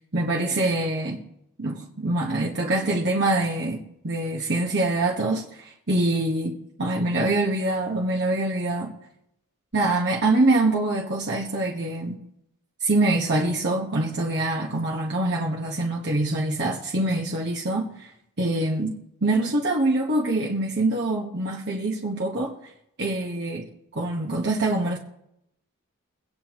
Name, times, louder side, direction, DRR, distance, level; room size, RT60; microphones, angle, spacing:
voice 1, 0.1-1.2 1.6-8.9 9.7-12.2 12.8-18.1 18.4-18.9 19.2-22.5 23.0-25.0, right 2 dB, 50° right, 1.5 m, -25 dB
23.5 x 9.6 x 3.1 m
head